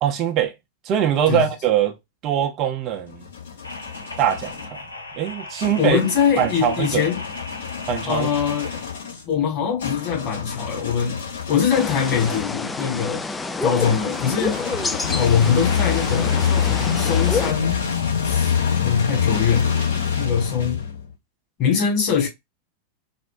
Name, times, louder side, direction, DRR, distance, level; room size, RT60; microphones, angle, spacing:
voice 1, 0.0-0.5 0.9-1.9 2.2-3.2 4.2-4.8 5.2-6.0 6.4-7.0 7.9-8.3, right 9 dB, 35° right, 0.6 m, -22 dB
sound 1, 2.9-4.7 5.6-12.6 13.8-21.1, left 7 dB, 65° left, 1.3 m, -26 dB
sound 2, 3.6-8.9, left 2 dB, 80° left, 0.7 m, -37 dB
voice 2, 5.8-7.2 8.1-8.8 9.3-11.2 11.5-13.2 13.6-14.6 15.1-17.8 18.2-18.5 18.8-19.7 20.2-20.8 21.6-22.3, left 7 dB, 35° left, 2.0 m, -22 dB
sound 3, 11.7-17.5, left 3 dB, 10° left, 0.4 m, -28 dB
4.2 x 2.5 x 2.5 m
figure-of-eight pair, 90°, 0 cm